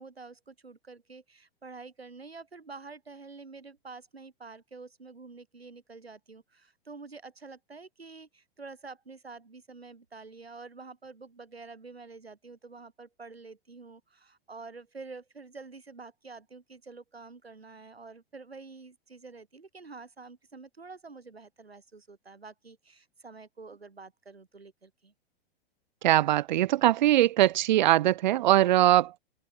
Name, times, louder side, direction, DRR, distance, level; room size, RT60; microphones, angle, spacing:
voice 1, 0.0-25.1, right 4 dB, 80° right, 4.4 m, -48 dB
voice 2, 26.0-29.2, right 14 dB, 50° right, 0.6 m, -22 dB
open air
figure-of-eight pair, 100°, 30 cm